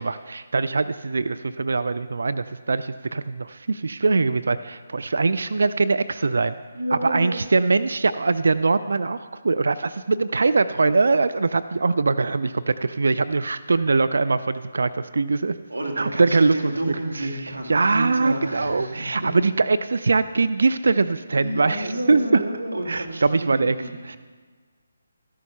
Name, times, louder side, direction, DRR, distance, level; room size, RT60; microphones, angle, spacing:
voice 1, 0.0-6.5 6.9-15.5 16.0-16.7 17.2-17.3 17.7-22.4 22.9-23.8 24.1-24.2, right 3 dB, 70° right, 13 dB, 0.4 m, -22 dB
voice 2, 6.7-7.3 15.7-19.3 21.3-24.2, right 1 dB, 90° right, 2 dB, 1.9 m, -30 dB
13.5 x 6.3 x 5.6 m, 1.5 s
figure-of-eight pair, 155°, 0 cm